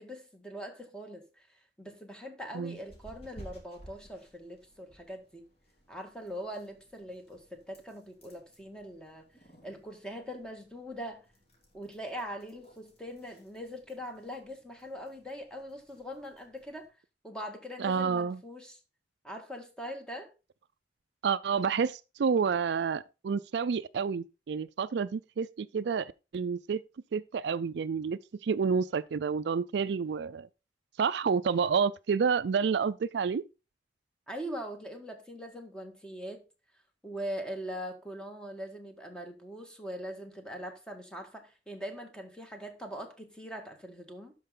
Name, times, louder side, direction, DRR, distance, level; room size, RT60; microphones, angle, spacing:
voice 1, 0.0-5.5 5.9-9.3 9.6-11.3 11.7-16.9 17.2-18.8 19.2-20.3 34.3-36.4 37.0-44.3, equal, 5° left, 1.8 m, -42 dB
sound 1, 2.7-16.9, equal, 35° left, 3.2 m, -57 dB
voice 2, 17.8-18.4 21.2-26.8 27.1-30.5 31.0-33.4, right 6 dB, 70° right, 0.4 m, -29 dB
12.5 x 5.3 x 3.8 m
head